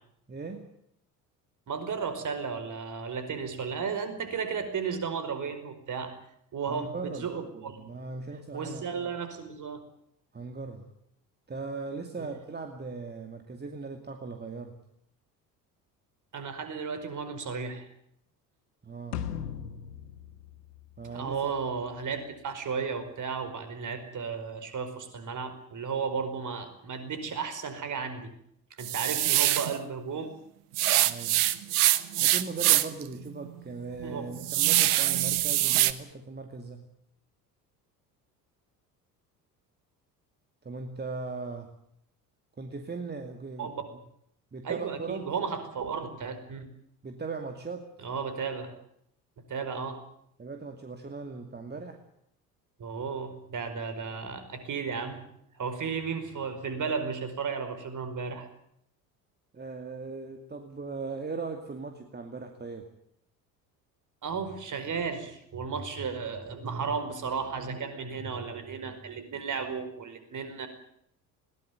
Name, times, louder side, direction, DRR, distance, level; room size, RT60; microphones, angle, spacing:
voice 1, 0.3-0.6 6.7-9.1 10.3-10.9 11.5-14.8 18.8-19.3 21.0-21.4 31.0-31.4 32.2-36.9 40.6-41.7 42.6-43.7 44.5-45.2 47.0-47.9 49.7-49.9 50.4-52.0 59.5-62.9, right 4 dB, 20° right, 5 dB, 2.5 m, -39 dB
voice 2, 1.7-6.1 6.5-7.7 8.5-9.8 12.2-12.3 16.3-17.9 21.0-28.3 28.8-30.3 34.0-34.2 43.6-43.8 44.6-46.7 48.0-48.7 49.5-50.0 52.8-58.5 64.2-70.7, right 5 dB, 40° right, 9 dB, 4.9 m, -34 dB
sound 1, 19.1-21.6, left 9 dB, 70° left, 1.8 m, -38 dB
sound 2, 28.8-29.7 30.8-33.0 33.4-33.5 34.0-35.9, right 15 dB, 65° right, 1.2 m, -24 dB
21.0 x 18.5 x 9.4 m, 0.72 s
figure-of-eight pair, 55°, 48 cm